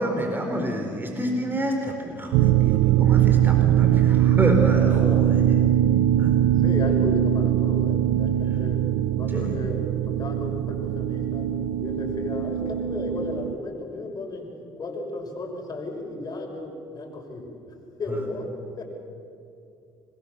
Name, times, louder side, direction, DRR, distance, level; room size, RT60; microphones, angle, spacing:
voice 1, 0.0-2.4 2.6-5.7 6.2-6.4 9.3-9.6 18.1-18.2, equal, 20° right, 3 dB, 4.5 m, -28 dB
sound 1, 2.3-13.5, right 11 dB, 80° right, 0.8 m, -21 dB
voice 2, 5.0-5.8 6.6-8.8 9.1-11.5 11.8-14.5 14.8-17.5 18.0-18.8, left 2 dB, 40° left, 2 dB, 6.1 m, -34 dB
26.0 x 20.5 x 6.9 m, 2.4 s
supercardioid pair, 75°, 10 cm